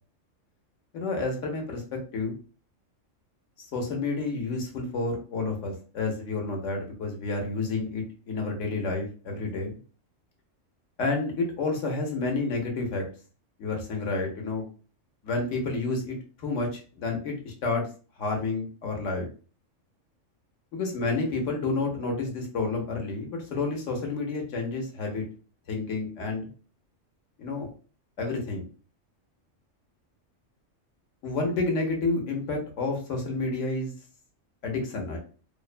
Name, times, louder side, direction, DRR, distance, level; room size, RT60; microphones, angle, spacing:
voice 1, 0.9-2.3 3.6-9.7 11.0-13.0 13.6-14.7 15.2-17.9 18.2-19.3 20.7-25.2 25.7-26.5 27.4-27.7 28.2-28.6 31.2-33.9 34.6-35.2, left 3 dB, 75° left, 1 dB, 1.0 m, -30 dB
2.6 x 2.1 x 2.4 m, 0.37 s
omnidirectional pair, 1.3 m